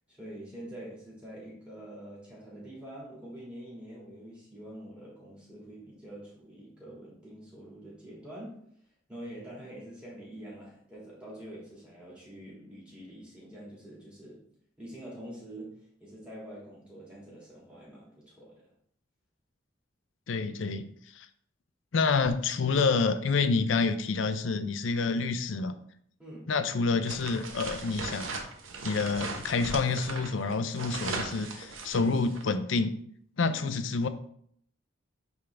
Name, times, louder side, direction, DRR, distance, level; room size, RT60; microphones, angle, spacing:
voice 1, 0.1-8.6 9.1-14.4 14.8-18.7 26.2-26.5 30.9-31.1 33.4-33.8, right 1 dB, 5° right, -6 dB, 2.5 m, -46 dB
voice 2, 20.3-20.9 21.1-21.3 21.9-25.7 26.5-28.3 28.8-32.9 33.4-34.1, left 4 dB, 75° left, 11 dB, 0.5 m, -28 dB
sound 1, 27.0-32.5, right 3 dB, 85° right, 1.0 m, -38 dB
8.5 x 3.6 x 3.4 m, 0.65 s
head